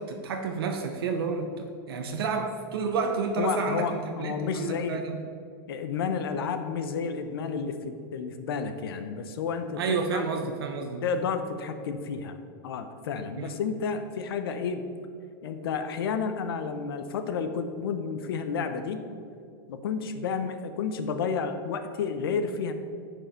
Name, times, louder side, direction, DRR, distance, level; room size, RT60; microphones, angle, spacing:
voice 1, 0.0-5.2 9.8-11.0 13.4-13.6, right 4 dB, 90° right, 4 dB, 0.8 m, -30 dB
voice 2, 3.4-5.0 5.7-10.3 11.0-12.4 12.6-14.8 15.4-19.0 19.7-22.7, left 5 dB, 85° left, 9 dB, 0.8 m, -31 dB
10.5 x 4.7 x 5.2 m, 2.3 s
supercardioid pair, 140°, 12 cm